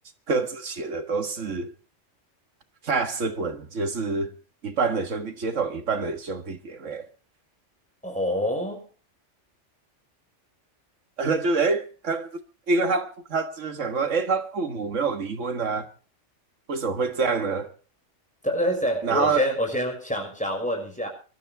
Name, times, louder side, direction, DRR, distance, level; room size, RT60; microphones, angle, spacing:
voice 1, 0.3-1.7 2.8-4.3 4.6-7.1 11.2-12.4 12.7-15.9 16.7-17.7 19.0-19.5, right 4 dB, 85° right, 2.0 m, -26 dB
voice 2, 8.0-8.8 18.4-21.1, equal, 5° left, 6.0 m, -26 dB
25.5 x 12.5 x 3.5 m
omnidirectional pair, 1.2 m